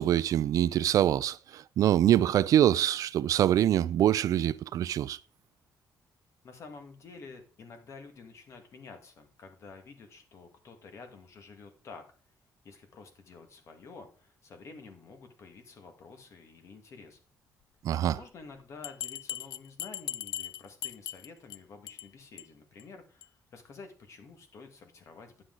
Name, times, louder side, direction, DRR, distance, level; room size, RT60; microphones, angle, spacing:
voice 1, 0.0-5.2 17.8-18.2, right 11 dB, 60° right, 0.4 m, -24 dB
voice 2, 6.4-12.1 12.6-17.2 18.1-25.5, left 4 dB, 50° left, 1.9 m, -50 dB
Bell, 18.8-21.6 21.9-22.1 22.4-22.5 22.8-22.9 23.2-23.3, left 12 dB, 75° left, 0.4 m, -38 dB
9.9 x 7.9 x 3.9 m
cardioid pair, 165°, 7 cm